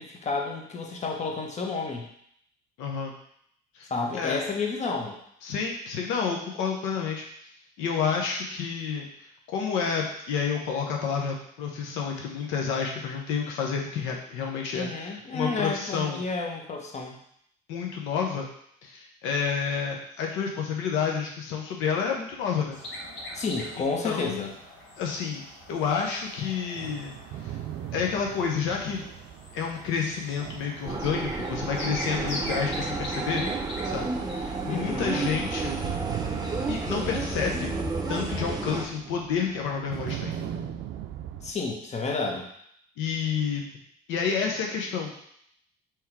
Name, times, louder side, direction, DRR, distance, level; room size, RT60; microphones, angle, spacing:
voice 1, 0.0-2.1 3.9-5.2 14.7-17.2 23.3-24.5 34.7-35.1 41.4-42.5, left 3 dB, 35° left, 1 dB, 1.0 m, -31 dB
voice 2, 2.8-3.1 3.7-4.4 5.4-7.3 7.8-16.2 17.7-18.5 18.8-22.8 23.8-24.5 25.0-25.4 25.7-27.6 27.9-29.1 29.5-33.4 33.8-34.1 34.4-35.7 36.7-40.3 42.2-42.4 43.0-43.7 44.1-45.2, left 6 dB, 85° left, 0 dB, 0.7 m, -30 dB
sound 1, 22.3-25.2 25.5-41.5, right 10 dB, 70° right, 0.4 m, -41 dB
sound 2, 22.7-38.4, left 1 dB, 65° left, 1.4 m, -43 dB
sound 3, 30.9-38.9, right 3 dB, 20° right, 0.7 m, -31 dB
3.5 x 3.1 x 4.5 m, 0.69 s
supercardioid pair, 85°, 20 cm